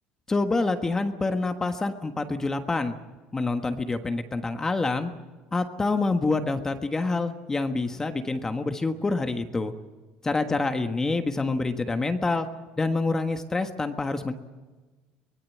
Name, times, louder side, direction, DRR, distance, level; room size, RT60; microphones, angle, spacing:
voice 1, 0.3-2.9 3.3-5.1 5.5-9.7 10.2-12.5 12.8-14.3, left 3 dB, 15° left, 7 dB, 1.5 m, -27 dB
24.0 x 19.0 x 8.6 m, 1.3 s
cardioid pair, 135°, 3 cm